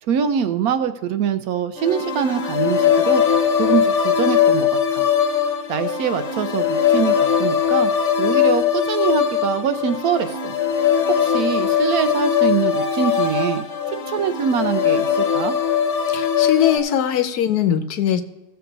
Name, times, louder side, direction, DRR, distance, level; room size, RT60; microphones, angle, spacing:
voice 1, 0.0-3.2 3.6-5.1 5.5-10.6 11.1-13.6 14.1-15.5, right 8 dB, 70° right, 11 dB, 1.0 m, -24 dB
sound 1, 1.8-16.8, left 8 dB, 55° left, 1.2 m, -20 dB
voice 2, 16.1-18.2, left 10 dB, 75° left, 10 dB, 1.2 m, -20 dB
15.5 x 6.8 x 3.9 m, 0.99 s
omnidirectional pair, 1.7 m